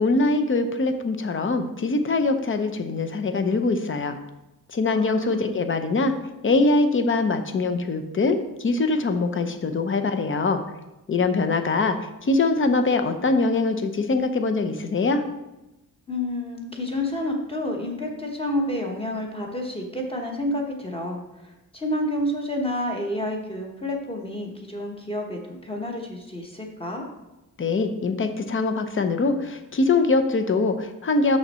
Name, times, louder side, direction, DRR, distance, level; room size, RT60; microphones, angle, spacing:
voice 1, 0.0-4.2 4.7-6.1 6.4-10.6 11.1-12.0 12.2-15.2 27.6-31.4, left 3 dB, 35° left, 8 dB, 0.7 m, -23 dB
voice 2, 4.9-5.6 16.1-27.0, left 1 dB, 15° left, 1 dB, 1.1 m, -29 dB
6.4 x 6.3 x 4.3 m, 0.98 s
wide cardioid pair, 160°, 36 cm